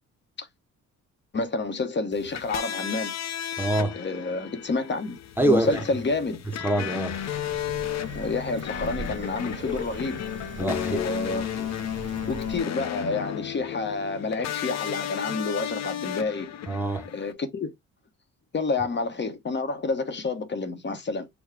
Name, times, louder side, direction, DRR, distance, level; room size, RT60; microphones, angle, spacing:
voice 1, 1.3-3.1 4.0-6.4 8.1-10.2 10.6-11.7 12.0-16.5 17.1-17.7 18.5-21.3, left 3 dB, 35° left, 1.0 m, -29 dB
sound 1, 2.1-17.3, left 11 dB, 55° left, 0.7 m, -34 dB
voice 2, 3.6-4.0 5.4-5.8 6.6-7.2 10.6-11.0 16.7-17.1, right 1 dB, 5° right, 0.6 m, -25 dB
Rain, 7.1-12.6, right 5 dB, 40° right, 0.9 m, -41 dB
4.7 x 2.3 x 4.6 m
cardioid pair, 95°, 31 cm